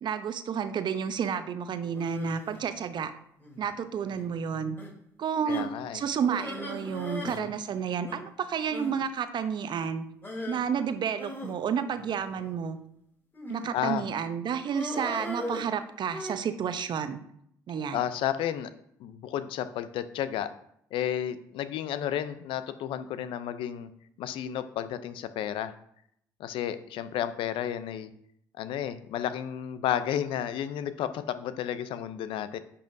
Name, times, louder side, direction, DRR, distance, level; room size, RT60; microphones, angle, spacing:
voice 1, 0.0-3.1 3.6-4.8 5.2-10.1 10.5-12.8 13.5-17.2 17.7-18.1, right 7 dB, 55° right, 10 dB, 0.7 m, -31 dB
sound 1, 1.9-2.6 3.4-3.7 4.1-4.3 4.8-4.9 5.5-5.8 6.3-7.4 7.7-7.8 8.1-8.2 8.7-8.9 10.2-10.6 11.2-12.5 13.3-13.8 14.7-16.3, left 1 dB, 25° left, 3.2 m, -38 dB
voice 2, 5.5-6.0 7.2-7.5 13.7-14.1 17.9-18.7 19.0-20.5 20.9-23.9 24.2-25.7 26.4-28.1 28.6-32.6, left 10 dB, 65° left, 12 dB, 0.6 m, -32 dB
10.0 x 5.5 x 2.7 m, 0.71 s
hypercardioid pair, 50°, 9 cm